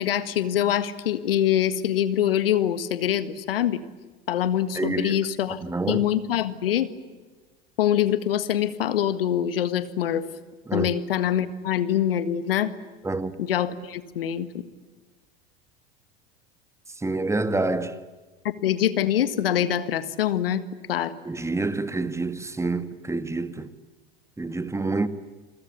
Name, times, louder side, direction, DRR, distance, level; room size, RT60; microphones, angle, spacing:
voice 1, 0.0-3.8 4.3-5.6 5.9-6.9 7.8-10.2 10.7-12.7 13.4-14.6 18.6-20.6 20.9-21.1, left 11 dB, 75° left, 1.8 m, -24 dB
voice 2, 4.8-5.2 5.6-6.0 10.7-10.9 13.0-13.3 17.0-18.0 21.3-23.7 24.4-25.1, right 3 dB, 10° right, 1.7 m, -27 dB
29.5 x 23.5 x 8.4 m
hypercardioid pair, 80°, 29 cm